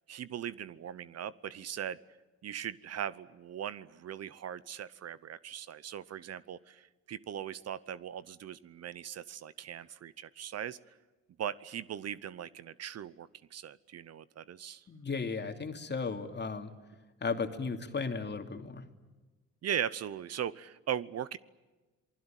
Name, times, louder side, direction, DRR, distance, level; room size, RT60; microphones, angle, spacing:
voice 1, 0.1-2.0 2.4-10.8 11.4-14.8 19.6-21.4, right 9 dB, 55° right, 17 dB, 0.9 m, -39 dB
voice 2, 14.9-16.7 17.2-18.9, left 4 dB, 35° left, 5 dB, 2.8 m, -35 dB
27.5 x 20.5 x 9.1 m, 1.2 s
cardioid pair, 90°, 30 cm